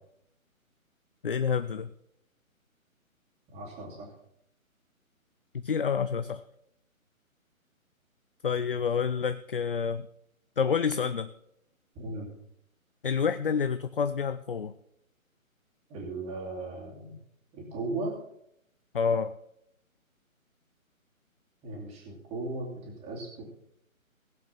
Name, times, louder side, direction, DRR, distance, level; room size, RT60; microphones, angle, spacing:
voice 1, 1.2-1.9 5.6-6.4 8.4-10.1 10.6-11.3 13.0-14.7 18.9-19.3, left 6 dB, 45° left, 13 dB, 0.4 m, -28 dB
voice 2, 3.5-4.1 11.9-12.3 15.9-17.2 17.5-18.2 21.6-23.4, right 2 dB, 15° right, -1 dB, 2.7 m, -37 dB
17.5 x 7.6 x 5.8 m, 0.75 s
figure-of-eight pair, 145°, 42 cm